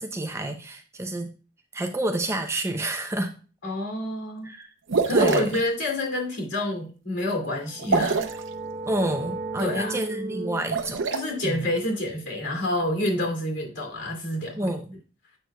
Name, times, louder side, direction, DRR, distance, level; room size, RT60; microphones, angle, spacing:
voice 1, 0.0-1.3 1.7-3.4 4.4-4.7 5.1-5.6 7.9-8.2 8.9-11.0 11.4-11.6 14.6-15.0, right 1 dB, 15° right, 5 dB, 0.5 m, -29 dB
voice 2, 3.6-4.5 5.0-8.3 9.6-10.0 11.1-14.7, left 1 dB, 65° left, 0 dB, 2.4 m, -28 dB
sound 1, 4.9-5.6 7.8-8.4 10.6-11.2, right 3 dB, 85° right, 0.7 m, -24 dB
sound 2, 7.6-13.1, right 2 dB, 50° right, 0.9 m, -37 dB
7.9 x 6.3 x 2.3 m, 0.36 s
head